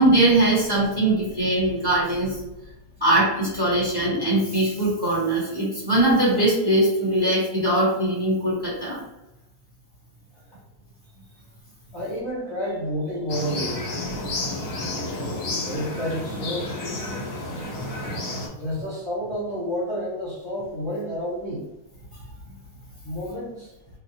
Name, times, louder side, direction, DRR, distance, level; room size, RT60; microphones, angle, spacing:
voice 1, 0.0-2.4 3.0-9.0 14.3-14.5, right 1 dB, 20° right, -8 dB, 1.1 m, -21 dB
voice 2, 11.9-13.9 15.7-17.2 18.6-21.6 23.0-23.7, equal, 25° left, -9 dB, 0.7 m, -30 dB
sound 1, 13.3-18.5, left 2 dB, 55° left, 0.8 m, -31 dB
2.9 x 2.1 x 2.7 m, 0.96 s
omnidirectional pair, 1.5 m